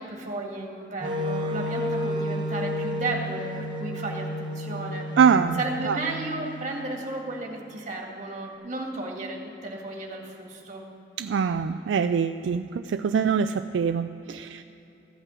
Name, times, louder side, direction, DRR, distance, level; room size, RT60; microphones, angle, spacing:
voice 1, 0.0-5.1 5.6-10.8, right 2 dB, 40° right, 0 dB, 2.0 m, -34 dB
Wind instrument woodwind instrument, 1.0-7.1, left 1 dB, 25° right, 0.8 m, -32 dB
voice 2, 5.2-5.6 5.9-6.0 11.2-14.6, right 6 dB, 75° right, 9 dB, 0.3 m, -23 dB
14.5 x 5.7 x 9.3 m, 3.0 s
head